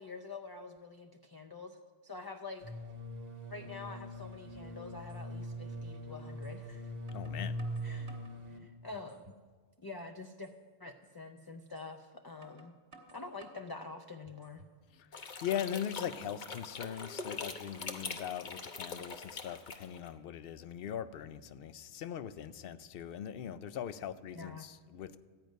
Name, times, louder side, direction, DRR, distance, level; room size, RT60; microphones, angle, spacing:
voice 1, 0.0-1.8 2.0-2.7 3.5-6.9 7.8-8.2 8.5-9.3 9.8-10.5 10.8-12.7 13.1-14.6 24.3-24.6, left 3 dB, 30° left, 4 dB, 0.4 m, -46 dB
sound 1, 2.6-8.6, equal, 60° right, 1.4 m, -42 dB
sound 2, 5.1-5.2 6.4-6.6 7.1-8.4 8.9-9.5 9.8-9.9 10.4-10.6 11.8-11.9 12.4-13.7 14.2-14.8, right 2 dB, 80° right, 1.6 m, -58 dB
voice 2, 7.1-7.6 14.9-25.2, left 9 dB, 65° left, 14 dB, 0.7 m, -40 dB
sound 3, 15.1-20.1, left 4 dB, 50° left, 0.9 m, -43 dB
13.5 x 5.2 x 9.1 m, 1.5 s
omnidirectional pair, 1.1 m